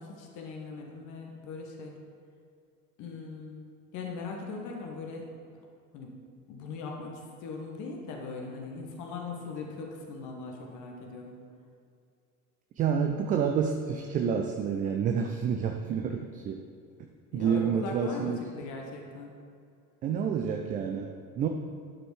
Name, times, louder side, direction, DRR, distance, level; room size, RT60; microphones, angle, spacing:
voice 1, 0.0-1.9 3.0-3.7 3.9-5.3 5.9-6.1 6.5-11.4 17.3-19.3, left 4 dB, 40° left, 1 dB, 1.4 m, -40 dB
voice 2, 12.8-16.6 17.3-18.4 20.0-21.5, right 7 dB, 20° right, 4 dB, 0.4 m, -29 dB
12.0 x 5.1 x 4.8 m, 2.4 s
figure-of-eight pair, 70°, 45 cm